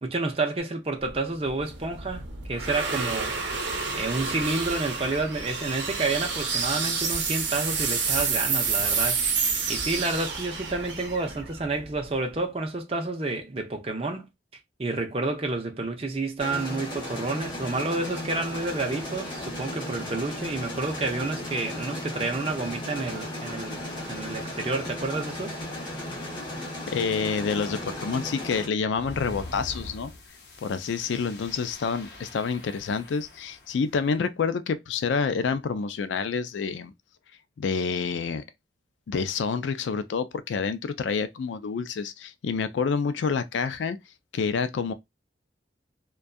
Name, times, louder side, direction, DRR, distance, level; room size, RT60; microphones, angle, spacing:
voice 1, 0.0-2.2 2.5-3.3 3.9-9.2 9.7-14.3 14.8-23.8 24.1-25.6, right 3 dB, 30° right, 0.5 m, -29 dB
sound 1, 1.1-12.3, right 5 dB, 80° right, 0.6 m, -29 dB
sound 2, 16.4-28.7, left 1 dB, 25° left, 0.9 m, -35 dB
voice 2, 26.9-30.1 30.6-36.9 37.6-38.4 39.1-44.0 44.3-44.9, left 5 dB, 80° left, 0.4 m, -28 dB
sound 3, 28.9-33.8, left 1 dB, 60° left, 0.7 m, -43 dB
2.6 x 2.2 x 2.2 m
head